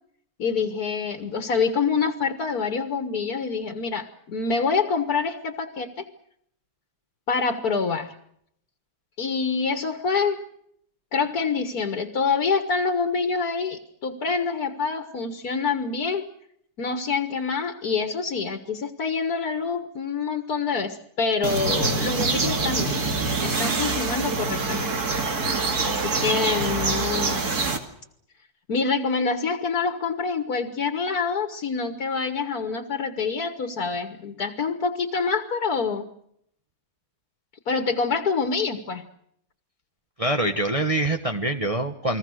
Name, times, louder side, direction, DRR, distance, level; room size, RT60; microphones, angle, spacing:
voice 1, 0.4-6.1 7.3-8.1 9.2-10.4 11.1-16.2 16.8-23.0 23.4-24.9 25.8-27.6 28.7-36.1 37.7-39.0, left 5 dB, 75° left, 7 dB, 2.0 m, -26 dB
sound 1, 21.4-27.8, right 3 dB, 80° right, 2.9 m, -25 dB
voice 2, 40.2-42.2, right 1 dB, 25° right, 4 dB, 1.3 m, -24 dB
29.5 x 21.0 x 6.5 m, 0.72 s
omnidirectional pair, 1.6 m